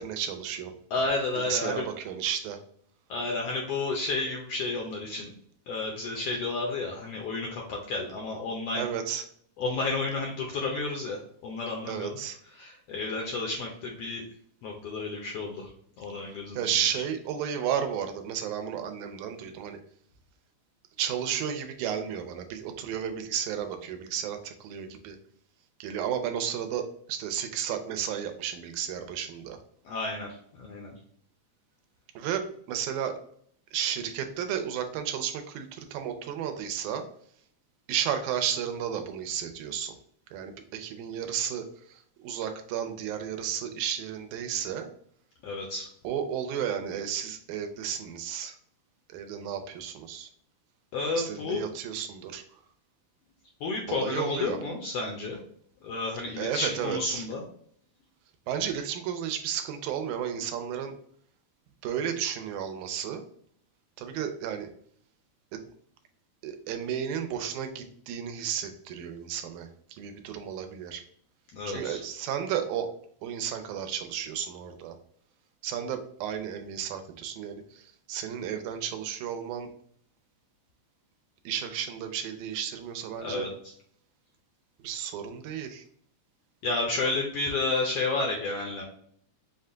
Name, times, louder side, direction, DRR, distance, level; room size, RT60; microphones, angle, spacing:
voice 1, 0.0-0.8 1.5-2.6 8.8-9.2 11.9-12.4 16.3-19.8 21.0-25.2 25.8-29.6 32.2-33.1 33.7-37.1 37.9-39.9 40.3-44.9 46.0-48.6 49.1-50.3 51.1-52.6 53.9-54.6 56.4-57.3 58.5-61.0 61.8-63.2 64.0-64.7 65.5-65.6 66.4-71.0 71.7-72.9 73.2-75.0 75.6-79.7 81.5-83.5 84.8-85.8, right 8 dB, 85° right, 7 dB, 2.0 m, -33 dB
voice 2, 0.9-1.8 3.1-5.3 5.7-8.9 9.6-12.2 12.5-14.2 14.6-15.7 16.0-16.7 29.8-30.9 45.4-45.9 50.9-51.6 53.6-55.4 55.8-57.4 71.5-72.0 83.2-83.7 86.6-88.8, left 3 dB, 75° left, 0 dB, 1.4 m, -31 dB
5.4 x 2.2 x 3.7 m, 0.62 s
omnidirectional pair, 3.3 m